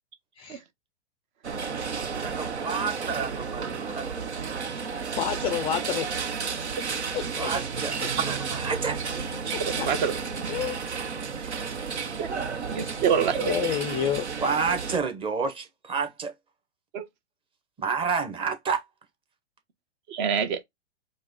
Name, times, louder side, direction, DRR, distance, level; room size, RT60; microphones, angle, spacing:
sound 1, 1.4-15.0, right 5 dB, 90° right, 1.0 m, -32 dB
voice 1, 2.1-4.2 7.4-9.0 11.4-11.6 14.4-16.3 17.8-18.8, right 5 dB, 15° right, 1.0 m, -30 dB
voice 2, 5.2-6.1 7.1-7.5 8.0-8.1 9.8-9.9 10.5-10.8 12.7-12.9 13.4-14.3, left 9 dB, 15° left, 0.4 m, -29 dB
voice 3, 12.7-13.5 16.9-17.1 20.1-20.6, right 7 dB, 45° right, 1.0 m, -25 dB
4.8 x 2.3 x 3.9 m
hypercardioid pair, 120°, 33 cm